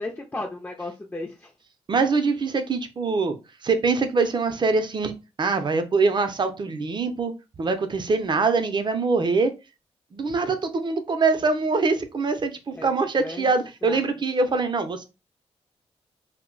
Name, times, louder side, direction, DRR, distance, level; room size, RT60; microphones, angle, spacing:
voice 1, 0.0-1.5 12.7-12.9 13.2-13.5 13.8-14.0, left 2 dB, 15° left, 0 dB, 0.5 m, -34 dB
voice 2, 1.9-3.4 3.6-7.3 7.6-9.5 10.1-15.0, right 4 dB, 40° right, 7 dB, 0.6 m, -23 dB
2.2 x 2.1 x 3.8 m, 0.28 s
cardioid pair, 75°, 12 cm